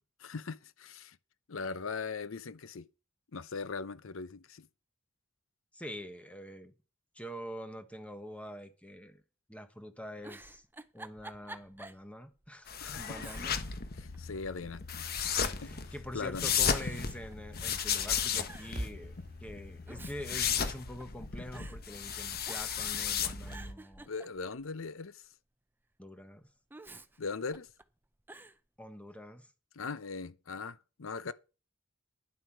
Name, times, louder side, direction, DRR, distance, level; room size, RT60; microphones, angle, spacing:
voice 1, 0.2-1.2 1.5-2.9 3.3-4.7 12.8-13.3 14.0-15.1 15.6-16.5 24.1-25.3 27.2-27.7 29.7-31.3, left 4 dB, 70° left, 0.7 m, -40 dB
voice 2, 5.7-6.7 7.1-9.2 9.5-10.6 10.9-13.6 15.6-24.1 26.0-26.5 28.8-29.5, equal, 5° left, 1.2 m, -45 dB
Giggle, 10.2-12.1 12.4-12.5 13.1-13.8 14.1-14.9 15.7-16.1 16.6-17.9 18.1-18.2 18.5-18.9 19.7-21.2 21.5-21.8 22.4-22.9 23.3-24.7 26.7-27.8 28.3-28.6, right 2 dB, 10° right, 0.6 m, -50 dB
sound 1, 12.7-23.7, left 7 dB, 50° left, 1.2 m, -35 dB
sound 2, 18.8-23.0, equal, 35° right, 1.8 m, -47 dB
10.5 x 7.8 x 6.1 m
head